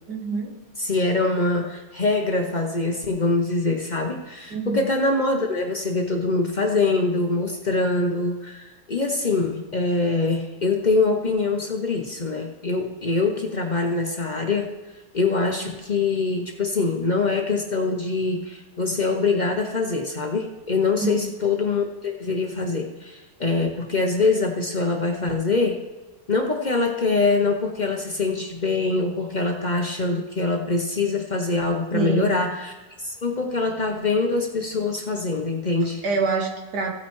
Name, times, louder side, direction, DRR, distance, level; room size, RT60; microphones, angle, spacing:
voice 1, 0.1-0.6 4.5-4.9 21.0-21.3 31.9-32.3 36.0-36.9, right 4 dB, 70° right, 1 dB, 1.9 m, -26 dB
voice 2, 0.8-14.7 15.1-25.8 26.3-32.7 33.0-36.0, left 3 dB, 45° left, 2 dB, 0.6 m, -24 dB
16.0 x 8.6 x 3.1 m, 1.2 s
omnidirectional pair, 1.9 m